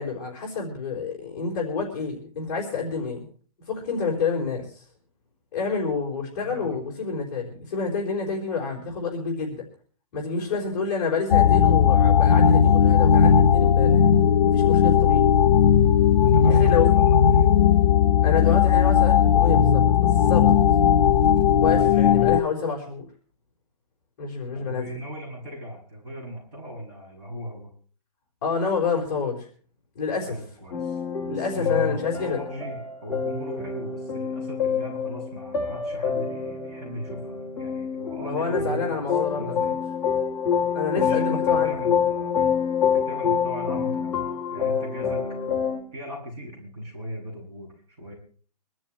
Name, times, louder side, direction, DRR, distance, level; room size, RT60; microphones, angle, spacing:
voice 1, 0.0-3.3 3.7-4.8 5.5-9.7 10.1-14.0 14.5-15.3 16.5-16.9 18.2-20.5 21.6-23.0 24.2-24.9 28.4-29.5 30.0-30.4 31.3-32.4 38.2-39.6 40.7-41.8, left 5 dB, 30° left, -2 dB, 4.1 m, -28 dB
voice 2, 6.4-6.8 10.9-11.0 16.1-17.5 21.7-22.1 24.5-27.7 30.2-38.9 39.2-39.8 40.9-42.4 42.8-45.3 45.9-48.1, equal, 20° right, -4 dB, 7.8 m, -38 dB
sound 1, 11.3-22.4, left 8 dB, 85° left, 1.0 m, -17 dB
sound 2, 30.7-45.8, left 7 dB, 10° left, 2.2 m, -27 dB
25.0 x 13.5 x 3.2 m, 0.43 s
hypercardioid pair, 180°, 20 cm